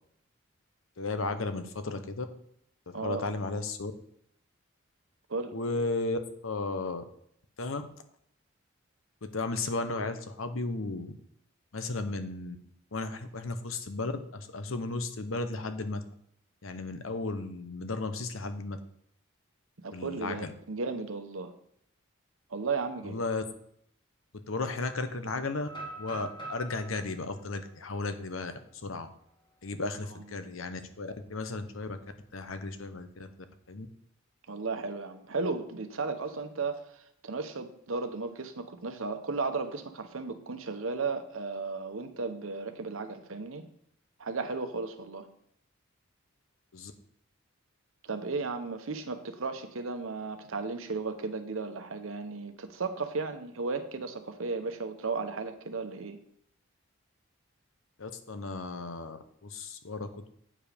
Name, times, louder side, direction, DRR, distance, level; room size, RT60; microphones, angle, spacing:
voice 1, 1.0-2.3 2.9-3.9 5.5-7.0 7.6-7.8 9.2-11.2 11.7-12.6 12.9-16.0 16.6-18.8 19.9-20.5 23.0-23.4 24.5-25.7 26.0-28.5 28.8-29.1 29.6-32.0 32.3-33.3 33.7-33.9 46.7-46.9 58.0-60.1, left 3 dB, 80° left, 9 dB, 0.9 m, -34 dB
voice 2, 2.9-3.3 5.3-5.6 19.8-21.5 22.5-23.2 34.5-43.7 44.2-45.3 48.0-56.2, right 4 dB, 80° right, 8 dB, 0.9 m, -35 dB
sound 1, 25.6-29.5 30.0-30.1 30.6-30.9 32.2-33.0, right 2 dB, 20° left, 1.9 m, -46 dB
8.8 x 5.0 x 5.1 m, 0.70 s
head